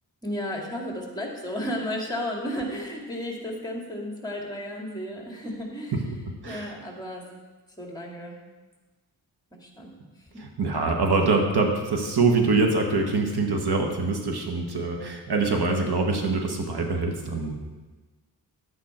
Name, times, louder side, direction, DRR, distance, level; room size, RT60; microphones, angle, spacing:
voice 1, 0.2-7.3 7.8-8.4 9.5-9.9 10.2-10.4, equal, 10° left, -1 dB, 2.3 m, -33 dB
voice 2, 6.4-6.7 10.4-17.6, right 3 dB, 75° right, 2 dB, 1.5 m, -24 dB
11.5 x 8.8 x 4.4 m, 1.2 s
wide cardioid pair, 95°, 39 cm